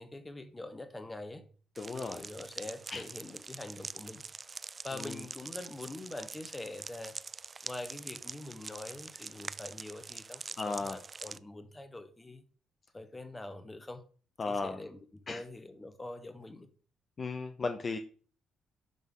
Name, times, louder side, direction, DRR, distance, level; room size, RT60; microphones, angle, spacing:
voice 1, 0.0-1.4 1.9-4.2 4.8-7.2 7.6-12.4 12.9-14.0 14.5-16.7, left 2 dB, 20° left, 1.2 m, -44 dB
voice 2, 1.8-2.3 2.9-3.0 4.9-5.2 10.6-11.0 14.4-14.8 15.3-15.4 17.2-18.0, left 3 dB, 40° left, 0.6 m, -35 dB
sound 1, 1.8-11.4, right 4 dB, 35° right, 0.3 m, -45 dB
10.5 x 3.6 x 3.8 m
hypercardioid pair, 45°, 0 cm